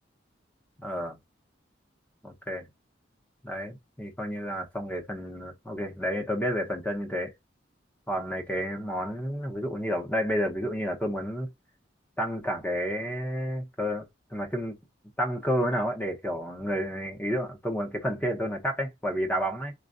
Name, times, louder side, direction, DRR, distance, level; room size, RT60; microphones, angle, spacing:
voice 1, 0.8-1.2 2.2-2.7 3.4-7.3 8.1-11.5 12.2-14.1 14.3-14.8 15.2-19.7, equal, 10° left, 0.7 m, -30 dB
4.3 x 2.2 x 2.4 m
head